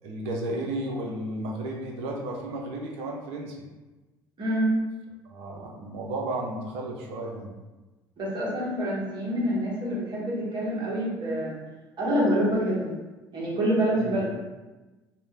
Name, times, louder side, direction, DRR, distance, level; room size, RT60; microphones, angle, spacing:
voice 1, 0.0-3.6 5.2-7.5 14.0-14.1, right 1 dB, 55° right, 0 dB, 0.6 m, -33 dB
voice 2, 4.4-4.7 8.2-11.6 12.0-12.9 13.3-14.4, equal, 40° right, -6 dB, 1.2 m, -26 dB
2.6 x 2.1 x 3.4 m, 1.2 s
figure-of-eight pair, 60°, 12 cm